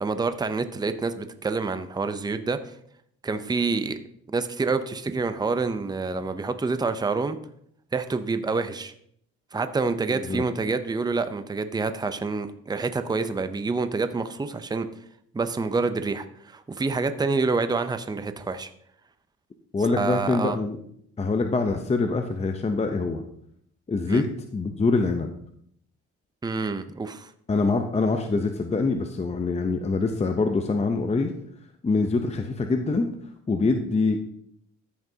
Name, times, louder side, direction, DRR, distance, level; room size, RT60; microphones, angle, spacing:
voice 1, 0.0-2.6 3.2-4.0 4.3-7.4 7.9-8.9 9.5-14.9 15.3-18.7 19.9-20.6 24.1-24.2 26.4-27.3, right 4 dB, 15° right, 10 dB, 0.6 m, -27 dB
voice 2, 19.7-20.8 21.2-23.2 23.9-24.3 24.5-25.3 27.5-31.3 31.8-33.1 33.5-34.2, left 3 dB, 20° left, 5 dB, 0.7 m, -24 dB
14.0 x 5.9 x 2.8 m, 0.69 s
cardioid pair, 90°, 30 cm